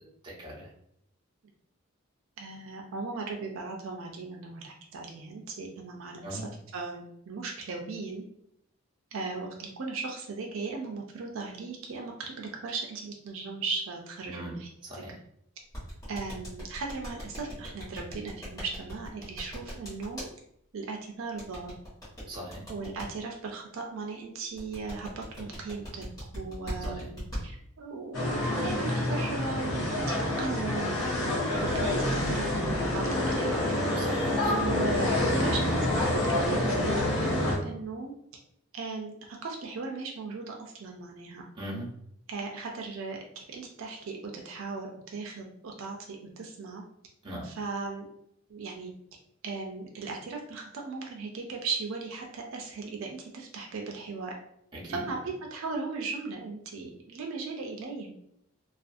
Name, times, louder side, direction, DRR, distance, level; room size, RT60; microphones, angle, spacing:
voice 1, 0.2-0.7 6.2-6.5 14.3-14.6 14.8-15.1 22.3-22.6 26.8-27.1 34.0-34.5 41.6-41.9 47.2-47.5 54.7-55.0, right 1 dB, 20° right, -6 dB, 0.7 m, -40 dB
voice 2, 2.4-6.4 6.7-8.2 9.1-15.0 16.1-20.2 20.7-21.7 22.7-26.1 26.3-27.5 27.8-31.1 31.6-33.6 34.5-38.1 38.7-41.4 42.3-46.8 47.4-48.0 48.5-48.9 49.4-54.3 54.9-58.1, right 4 dB, 70° right, 1 dB, 0.4 m, -37 dB
sound 1, 15.7-20.3 21.4-23.1 24.6-27.4, equal, 15° left, 1.1 m, -39 dB
sound 2, 28.1-37.6, left 1 dB, 90° left, 0.9 m, -27 dB
2.4 x 2.3 x 2.5 m, 0.73 s
head